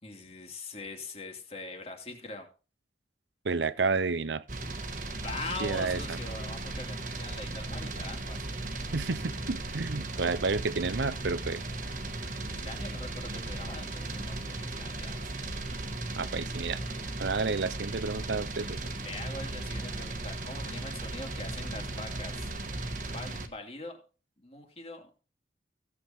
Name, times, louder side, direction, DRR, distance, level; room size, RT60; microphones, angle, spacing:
voice 1, 0.0-2.5 5.0-8.6 12.4-15.2 19.0-22.5 23.1-24.0 24.4-25.2, left 2 dB, 35° left, 2.6 m, -42 dB
voice 2, 3.4-4.4 5.6-6.2 8.9-11.6 16.2-16.8 17.2-18.8, right 4 dB, 75° right, 0.7 m, -30 dB
sound 1, 4.5-23.5, right 2 dB, 45° right, 1.5 m, -36 dB
16.0 x 7.6 x 4.3 m
head